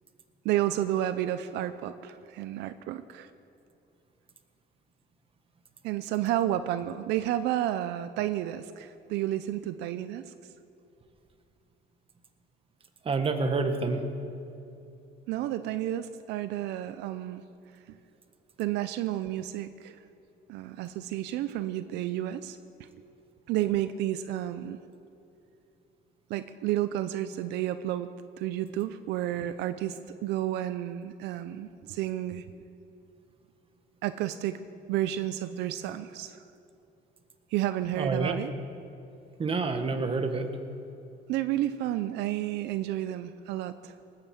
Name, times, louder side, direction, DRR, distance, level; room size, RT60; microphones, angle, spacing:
voice 1, 0.4-3.3 5.8-10.3 15.3-17.4 18.6-20.0 20.5-22.9 23.5-24.8 26.3-28.1 28.4-32.4 34.0-34.6 34.9-36.4 37.5-38.5 41.3-43.9, right 13 dB, 85° right, 12 dB, 0.6 m, -31 dB
voice 2, 13.0-14.0 38.0-38.4 39.4-40.5, right 3 dB, 35° right, 7 dB, 1.6 m, -28 dB
19.0 x 9.1 x 7.6 m, 2.8 s
cardioid pair, 110°, 17 cm